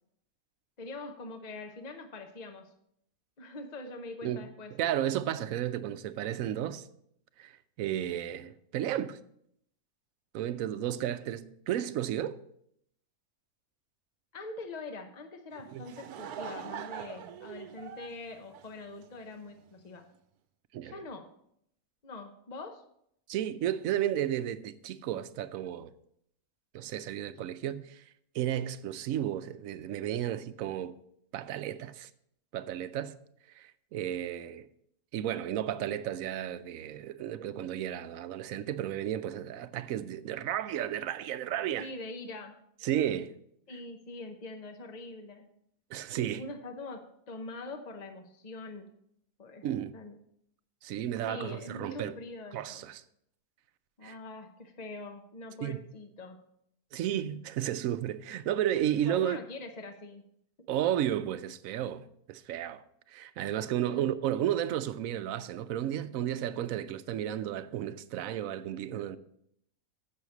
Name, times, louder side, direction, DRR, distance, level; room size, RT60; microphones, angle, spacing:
voice 1, 0.8-2.7 3.4-4.7 14.3-20.1 20.8-21.3 22.0-22.8 41.8-42.6 43.7-45.5 46.2-48.9 49.4-49.7 49.9-50.2 51.3-52.9 54.0-56.4 59.0-60.2 60.6-60.7 63.8-64.1, left 2 dB, 40° left, 0.7 m, -43 dB
voice 2, 4.7-6.8 7.4-7.5 7.8-9.2 10.3-12.4 15.7-15.8 20.7-20.9 23.3-25.9 26.7-28.0 28.3-30.9 31.3-32.1 32.5-33.2 33.6-34.7 35.1-41.9 42.8-43.3 45.9-46.4 49.6-49.9 50.8-52.1 52.5-53.0 54.0-54.2 55.6-55.9 56.9-59.4 60.7-69.2, right 11 dB, 70° right, 1.0 m, -33 dB
Laughter / Crowd, 15.6-19.3, right 8 dB, 90° right, 1.2 m, -43 dB
7.8 x 6.5 x 7.1 m
omnidirectional pair, 1.6 m